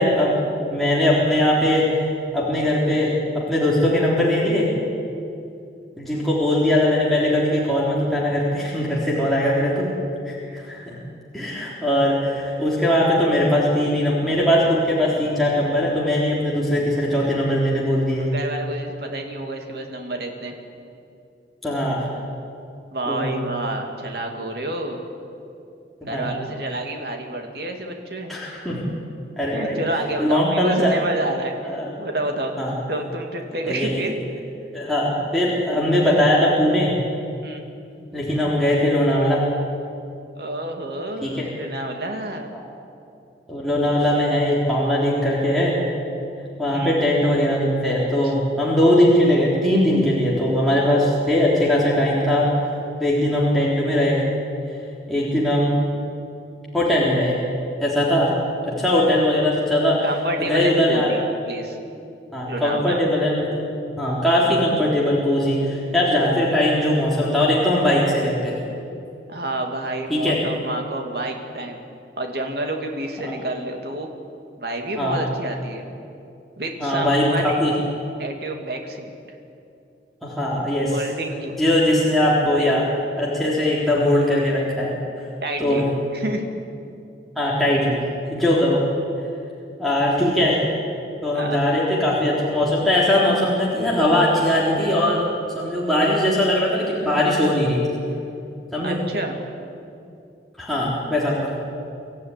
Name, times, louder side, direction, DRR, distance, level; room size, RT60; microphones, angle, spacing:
voice 1, 0.0-2.1 2.3-4.7 6.0-9.9 10.3-10.4 10.7-11.0 11.3-18.3 21.6-22.0 23.1-23.3 26.0-26.3 28.3-28.8 29.4-29.8 30.2-30.9 31.6-31.9 32.6-32.7 33.7-34.0 34.7-36.9 38.1-39.4 41.2-41.5 42.5-42.6 43.5-45.8 46.6-52.5 53.0-54.2 55.1-55.8 56.7-57.4 57.8-58.3 58.6-60.0 60.4-61.1 62.3-63.5 64.0-68.6 70.1-70.4 73.2-73.3 74.9-75.2 76.8-77.7 80.2-81.0 81.5-82.8 83.2-84.9 85.6-85.8 87.4-88.0 88.2-88.8 89.8-90.6 91.2-95.2 95.5-97.8 98.7-99.0 100.6-101.5, left 1 dB, ahead, -7 dB, 3.7 m, -20 dB
voice 2, 18.2-20.5 22.9-25.0 26.0-28.4 29.5-32.5 32.9-34.1 37.4-37.6 40.3-42.5 46.7-47.0 48.2-48.3 60.0-61.2 61.5-61.8 62.4-63.0 69.3-71.8 72.2-74.1 74.6-75.9 76.6-77.6 78.2-79.1 80.9-81.6 82.6-82.8 85.4-85.8 86.1-86.4 91.3-91.6 98.8-99.4, right 1 dB, 60° right, 3 dB, 2.7 m, -29 dB
25.0 x 14.5 x 9.9 m, 2.6 s
head